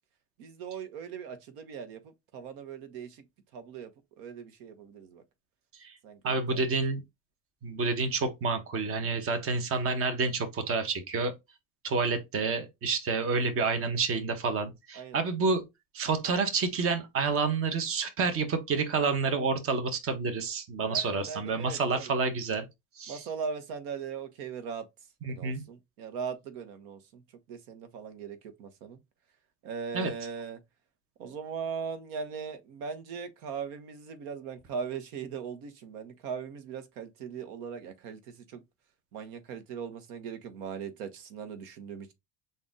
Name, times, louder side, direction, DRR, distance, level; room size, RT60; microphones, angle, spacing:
voice 1, 0.4-2.0 2.3-3.2 3.5-3.9 4.2-5.2 6.0-6.6 15.0-15.2 20.9-22.1 23.1-24.8 25.3-27.2 27.5-29.0 29.6-30.6 31.2-38.2 38.5-38.6 39.1-42.1, right 6 dB, 75° right, 1.1 m, -39 dB
voice 2, 6.2-7.0 7.6-11.3 11.8-15.6 15.9-22.7 23.0-23.2 25.2-25.6 29.9-30.1, right 4 dB, 30° right, 0.9 m, -29 dB
4.0 x 2.6 x 3.6 m
cardioid pair, 140°, 46 cm